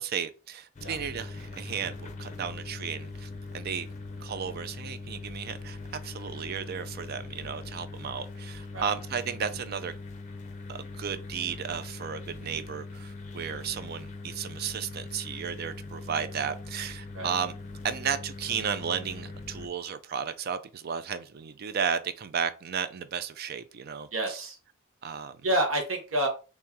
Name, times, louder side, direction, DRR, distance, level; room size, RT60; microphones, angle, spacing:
voice 1, 0.0-3.9 4.2-10.0 10.7-17.5 17.8-24.4 25.0-25.4, right 7 dB, 45° right, 0.3 m, -34 dB
sound 1, 0.8-19.7, left 3 dB, 35° left, 0.5 m, -41 dB
voice 2, 24.1-24.6 25.4-26.3, right 1 dB, 65° right, 0.9 m, -28 dB
3.0 x 2.9 x 3.5 m
head